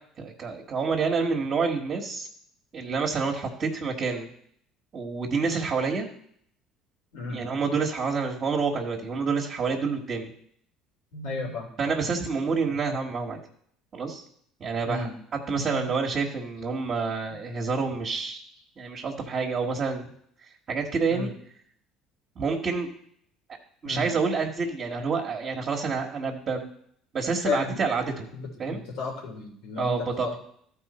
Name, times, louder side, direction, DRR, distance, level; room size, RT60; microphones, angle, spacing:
voice 1, 0.2-2.3 2.7-4.3 4.9-6.1 7.3-10.3 11.8-13.4 13.9-14.2 14.6-18.4 18.8-20.1 20.7-21.3 22.3-22.9 23.8-26.7 27.1-28.3 28.6-28.8 29.8-30.3, right 4 dB, 45° right, -2 dB, 1.5 m, -28 dB
voice 2, 11.1-11.7 14.8-15.1 15.5-15.9 21.1-21.3 23.8-24.1 27.4-27.8 28.3-29.9 30.2-30.4, left 4 dB, 75° left, 0 dB, 3.0 m, -33 dB
14.0 x 4.6 x 4.3 m, 0.66 s
supercardioid pair, 80°, 0 cm